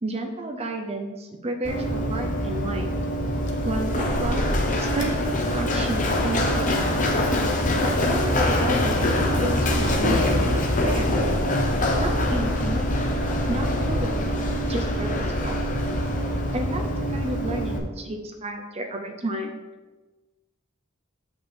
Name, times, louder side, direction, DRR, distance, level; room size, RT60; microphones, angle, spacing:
voice 1, 0.0-3.0 3.6-4.5 4.8-6.9 7.8-11.1 12.0-12.8 13.5-14.3 14.7-15.6 16.5-19.6, right 2 dB, 30° right, 4 dB, 0.7 m, -31 dB
Run, 1.6-17.8, left 1 dB, 40° left, 0.9 m, -24 dB
sound 1, 3.5-10.9, equal, 60° left, 1.1 m, -35 dB
7.6 x 5.3 x 4.4 m, 1.2 s
head